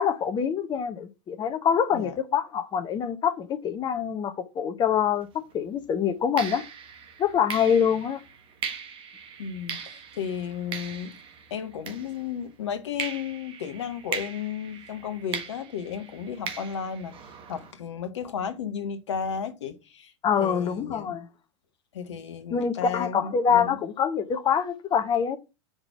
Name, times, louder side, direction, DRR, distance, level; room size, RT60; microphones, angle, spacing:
voice 1, 0.0-6.6 7.2-8.2 20.2-21.3 22.5-25.4, left 7 dB, 30° left, 0.9 m, -25 dB
sound 1, 5.2-5.4 6.4-12.5 13.0-17.7, right 6 dB, 35° right, 1.3 m, -39 dB
voice 2, 9.4-11.1 11.5-17.1 17.5-20.1 20.4-21.1 21.9-23.8, left 7 dB, 70° left, 1.1 m, -34 dB
5.2 x 3.9 x 5.9 m
figure-of-eight pair, 85°, 16 cm